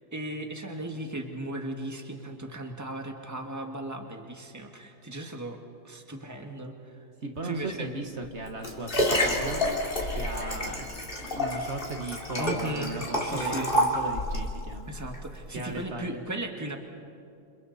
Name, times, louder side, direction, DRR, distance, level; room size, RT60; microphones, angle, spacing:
voice 1, 0.0-5.6 5.8-7.1 7.4-7.9 12.4-13.7 14.9-16.8, right 1 dB, 15° right, 3 dB, 1.8 m, -37 dB
voice 2, 7.2-9.6 10.1-10.8 11.1-14.9 15.5-16.2, right 2 dB, 60° right, 4 dB, 1.6 m, -37 dB
Liquid, 8.2-14.5 15.1-15.2, left 1 dB, 40° left, 3.3 m, -29 dB
sound 1, 8.7-16.0, left 2 dB, 80° left, 2.2 m, -47 dB
29.0 x 27.5 x 4.1 m, 2.5 s
omnidirectional pair, 1.4 m